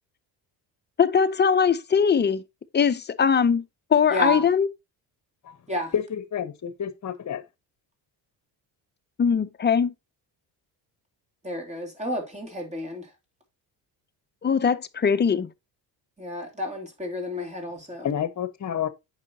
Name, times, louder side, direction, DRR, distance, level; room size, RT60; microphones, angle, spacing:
voice 1, 1.0-2.4 2.7-3.7 3.9-4.7 9.2-9.9 14.4-15.5, left 6 dB, 25° left, 0.6 m, -21 dB
voice 2, 4.1-4.5 5.7-5.9 11.4-13.1 16.2-18.1, left 1 dB, 15° right, 2.6 m, -31 dB
voice 3, 5.9-7.4 18.0-18.9, left 8 dB, 40° left, 1.1 m, -29 dB
8.4 x 5.6 x 2.8 m
cardioid pair, 105°, 44 cm